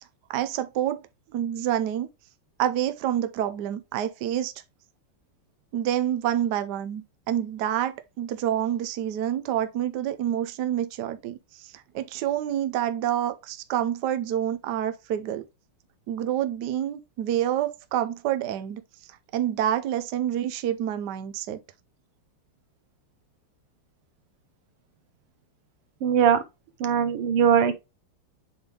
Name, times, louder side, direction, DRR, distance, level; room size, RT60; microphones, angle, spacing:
voice 1, 0.3-1.0 1.3-2.1 2.6-4.5 5.7-15.4 16.1-18.8 19.3-21.6, right 11 dB, 65° right, 1.1 m, -28 dB
voice 2, 26.0-26.4 26.8-27.7, right 8 dB, 85° right, 1.9 m, -20 dB
7.9 x 3.5 x 3.7 m
omnidirectional pair, 2.4 m